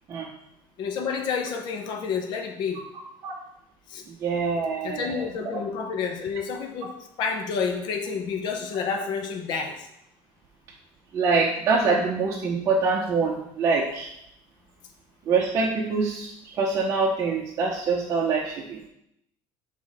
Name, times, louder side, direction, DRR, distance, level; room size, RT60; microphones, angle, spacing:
voice 1, 0.8-2.8 3.9-4.1 4.8-9.9, left 5 dB, 45° left, 4 dB, 0.8 m, -29 dB
voice 2, 4.1-5.2 11.1-14.1 15.3-18.8, right 4 dB, 30° right, -3 dB, 0.8 m, -25 dB
6.2 x 3.7 x 4.8 m, 0.79 s
cardioid pair, 160°, 10 cm